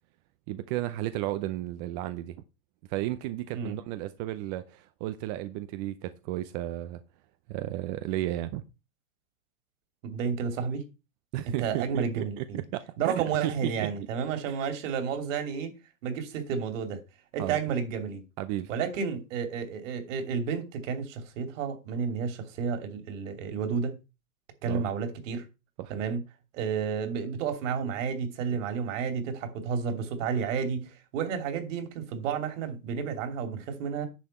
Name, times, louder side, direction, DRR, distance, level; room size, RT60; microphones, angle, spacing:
voice 1, 0.5-2.4 2.9-7.0 7.5-8.6 11.3-12.4 12.7-13.9 14.5-14.6 17.4-17.6 18.4-18.8 24.7-24.9 25.8-25.9, right 15 dB, 30° right, 0.6 m, -33 dB
voice 2, 10.0-10.8 11.4-12.6 13.0-15.7 16.0-17.0 17.3-18.2 18.7-23.9 24.6-25.5 25.9-26.2 26.5-34.1, right 6 dB, 55° right, 2.9 m, -31 dB
10.0 x 6.8 x 4.3 m
hypercardioid pair, 130°, 46 cm